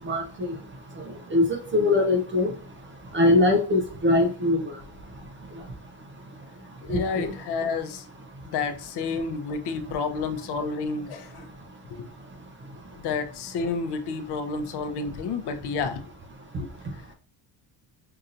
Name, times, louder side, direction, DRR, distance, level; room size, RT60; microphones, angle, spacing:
voice 1, 0.1-0.5 1.3-1.5 1.7-2.5 3.1-4.7 6.9-7.3, left 2 dB, 25° right, 3 dB, 0.5 m, -22 dB
voice 2, 6.8-8.0 8.5-11.5 12.0-12.1 13.0-16.0 16.6-16.7, left 4 dB, 55° left, 7 dB, 0.7 m, -30 dB
5.6 x 2.6 x 2.5 m, 0.40 s
cardioid pair, 160°, 48 cm